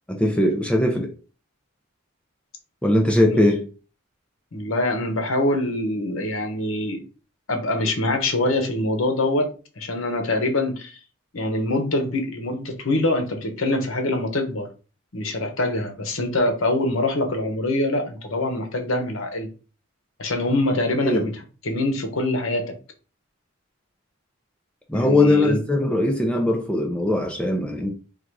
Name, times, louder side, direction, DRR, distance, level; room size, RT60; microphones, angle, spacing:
voice 1, 0.1-1.1 2.8-3.7 21.0-21.3 24.9-27.9, left 1 dB, 5° left, 0.5 m, -20 dB
voice 2, 4.5-7.0 7.5-11.0 11.3-14.7 15.1-19.5 20.2-21.3 21.6-22.7 24.9-25.6, left 1 dB, 70° left, 1.0 m, -24 dB
3.8 x 2.4 x 4.6 m
head